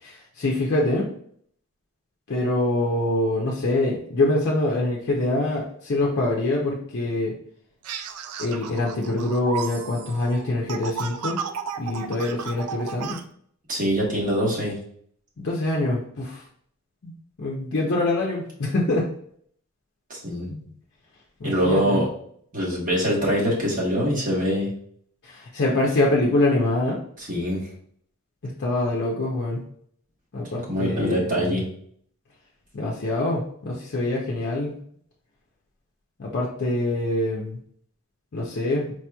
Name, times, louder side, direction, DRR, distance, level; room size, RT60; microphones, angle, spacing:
voice 1, 0.0-1.1 2.3-7.3 8.4-11.4 11.8-13.2 15.4-16.4 17.0-17.1 17.4-19.1 20.5-20.8 21.4-22.0 25.2-27.0 28.4-29.6 30.3-31.6 32.7-34.8 36.2-37.6 38.3-38.9, left 2 dB, 50° left, -3 dB, 0.5 m, -25 dB
sound 1, 7.8-13.2, right 7 dB, 80° right, 0.4 m, -34 dB
voice 2, 13.7-14.8 20.1-20.5 21.4-22.1 22.5-24.7 27.2-27.7 30.7-31.6, equal, 35° right, -4 dB, 1.1 m, -24 dB
4.5 x 2.9 x 2.2 m, 0.64 s
head